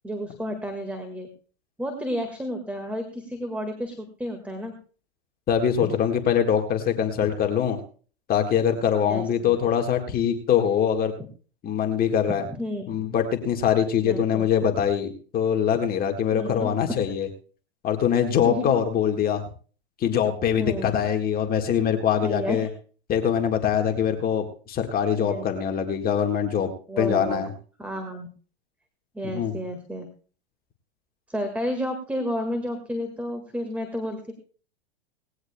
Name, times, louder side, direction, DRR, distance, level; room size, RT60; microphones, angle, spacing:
voice 1, 0.0-1.3 1.8-4.7 5.8-5.9 9.0-9.5 12.5-13.0 14.0-14.4 16.3-16.7 18.4-18.7 20.6-21.0 22.2-22.7 25.2-25.5 26.9-27.5 27.8-28.3 29.1-30.1 31.3-34.3, equal, 5° right, 5 dB, 1.7 m, -31 dB
voice 2, 5.5-7.8 8.3-11.1 11.6-12.4 12.9-15.1 15.3-17.3 17.8-19.4 20.0-22.7 23.1-26.7 27.0-27.5 29.3-29.5, left 8 dB, 30° left, 4 dB, 1.6 m, -23 dB
19.0 x 16.0 x 2.2 m, 0.40 s
hypercardioid pair, 120°, 32 cm